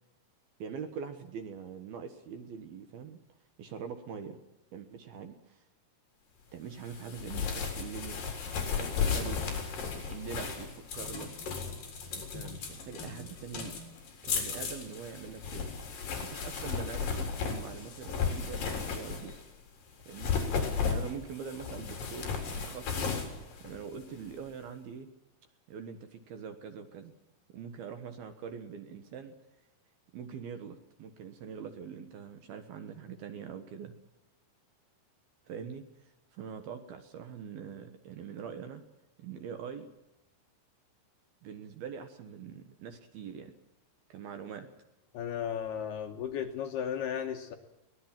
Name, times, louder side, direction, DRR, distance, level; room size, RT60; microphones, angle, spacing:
voice 1, 0.6-3.2 3.6-4.4 4.7-5.7 6.5-9.4 9.9-11.3 12.1-13.8 14.2-19.3 20.1-23.1 23.6-25.1 25.7-27.1 27.5-29.3 30.1-34.0 35.5-38.8 39.2-39.9 41.4-43.5 44.1-44.7, right 7 dB, 65° right, 8 dB, 2.7 m, -43 dB
sound 1, 6.8-19.5 20.0-24.3, left 6 dB, 45° left, 5.4 m, -35 dB
voice 2, 45.1-47.6, left 8 dB, 70° left, 5 dB, 2.7 m, -35 dB
23.0 x 18.0 x 7.5 m, 0.97 s
omnidirectional pair, 5.7 m